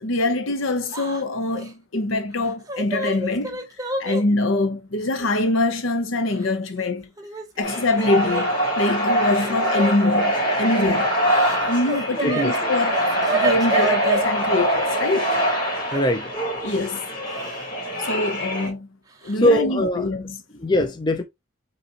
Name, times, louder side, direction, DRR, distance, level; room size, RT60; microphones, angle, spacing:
voice 1, 0.0-3.6 4.0-7.1 7.6-11.1 11.7-13.0 13.3-15.4 16.6-17.1 18.0-18.9 19.2-20.4, left 2 dB, 85° left, 0.8 m, -24 dB
Yell / Crying sobbing, 0.9-1.2 1.5-1.7 2.4-4.2 5.2-5.3 6.3-6.9 7.2-8.5 9.6-9.9 11.1-12.5 12.8-14.2 15.9-16.0 17.3-17.7 18.0-18.1 19.2-19.4 19.8-20.1, right 3 dB, 20° right, 0.7 m, -29 dB
sound 1, 7.6-18.7, equal, 40° left, 2.3 m, -23 dB
voice 2, 12.1-12.7 15.9-16.3 19.4-20.1 20.6-21.2, left 1 dB, 20° left, 0.5 m, -21 dB
5.3 x 3.1 x 2.9 m
head